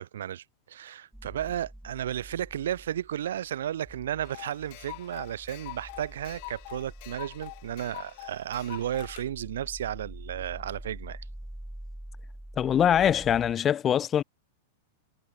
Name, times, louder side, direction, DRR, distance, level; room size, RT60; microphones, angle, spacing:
voice 1, 0.0-11.2, right 11 dB, 80° right, 3.6 m, -33 dB
sound 1, 1.1-13.5, right 1 dB, ahead, 3.5 m, -46 dB
sound 2, 4.2-9.3, left 31 dB, 50° left, 1.5 m, -45 dB
voice 2, 12.6-14.2, left 9 dB, 25° left, 0.4 m, -23 dB
supercardioid pair, 140°, 0 cm